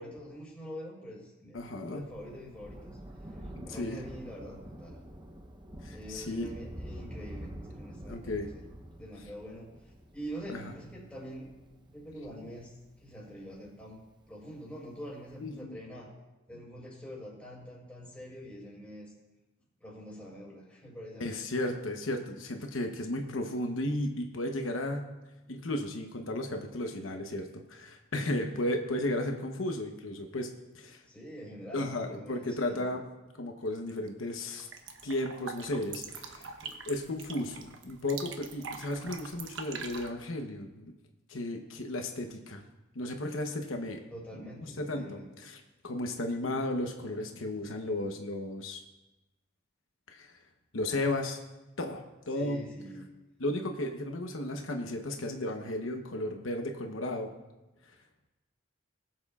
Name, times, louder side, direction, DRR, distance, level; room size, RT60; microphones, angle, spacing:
voice 1, 0.0-1.6 1.9-3.0 3.3-5.0 5.9-8.6 9.0-11.5 11.9-14.0 14.3-16.1 16.5-19.1 19.8-21.4 29.0-29.2 31.1-32.9 44.1-45.3 52.3-53.0, equal, 5° left, -5 dB, 4.3 m, -45 dB
voice 2, 1.5-2.1 3.5-4.0 5.8-6.5 8.1-8.5 10.5-10.7 15.4-15.8 21.2-25.1 25.5-30.5 30.7-31.0 31.7-33.1 33.4-34.7 35.0-36.5 36.9-40.9 41.3-42.6 42.9-44.0 44.6-48.8 50.1-50.4 50.7-51.4 51.8-52.7 53.4-57.3, left 1 dB, 90° left, 3 dB, 1.0 m, -34 dB
Thunder, 1.6-14.4 15.3-15.4, equal, 20° right, 0.7 m, -47 dB
sound 1, 33.7-34.1 34.4-40.1, right 5 dB, 80° right, 1.0 m, -44 dB
21.0 x 7.7 x 2.4 m, 1.1 s
head